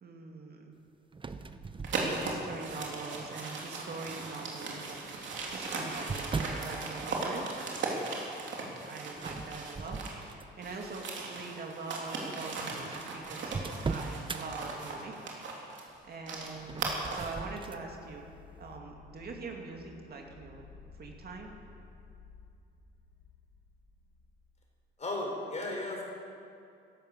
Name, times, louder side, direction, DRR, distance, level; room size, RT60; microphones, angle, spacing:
voice 1, 0.0-0.7 1.9-5.0 5.5-7.5 8.8-10.0 10.2-15.1 16.0-18.2 18.6-20.7 20.9-21.6, right 3 dB, 50° right, 1 dB, 2.4 m, -43 dB
sound 1, 1.1-2.6 3.2-3.7 4.8-6.7 9.2-10.7 11.2-11.4 12.2-12.3 12.5-12.6 12.9-14.4 16.5-17.8, right 4 dB, 25° right, 0.8 m, -39 dB
sound 2, 1.8-10.3 10.6-17.4, right 3 dB, 70° right, 3.1 m, -38 dB
sound 3, 15.9-24.6, left 5 dB, 85° left, 3.7 m, -56 dB
voice 2, 25.0-26.0, left 2 dB, 35° left, 0 dB, 4.2 m, -35 dB
16.0 x 12.0 x 6.7 m, 2.5 s
cardioid pair, 90°, 20 cm